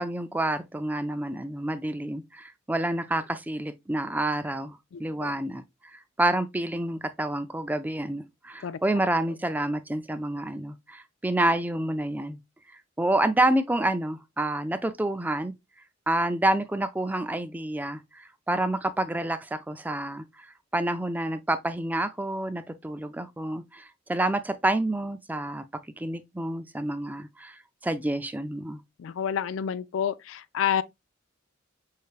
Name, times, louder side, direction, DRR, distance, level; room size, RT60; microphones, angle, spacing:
voice 1, 0.0-5.6 5.9-12.4 13.0-15.5 16.1-25.6 26.0-28.8, right 1 dB, 10° right, 0.3 m, -28 dB
voice 2, 4.9-5.3 8.6-8.8 29.0-30.8, left 8 dB, 75° left, 0.3 m, -29 dB
5.5 x 3.3 x 2.3 m
head